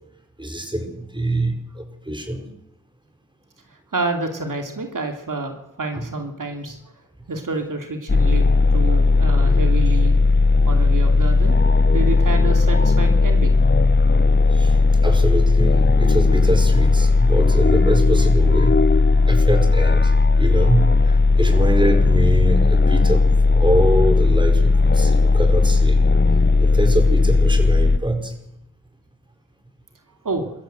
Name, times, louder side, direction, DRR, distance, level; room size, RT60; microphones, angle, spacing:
voice 1, 0.4-2.5 5.9-6.0 14.5-14.7 15.0-18.9 19.3-23.3 23.5-26.0 26.6-28.3, right 1 dB, 15° right, 5 dB, 5.1 m, -24 dB
voice 2, 3.9-6.8 7.3-10.1 10.6-11.6 11.9-13.5 30.2-30.5, right 2 dB, 80° right, 4 dB, 2.8 m, -28 dB
sound 1, 8.1-28.0, left 3 dB, 35° left, 0.9 m, -16 dB
24.5 x 14.0 x 7.8 m, 0.82 s
cardioid pair, 45°, 31 cm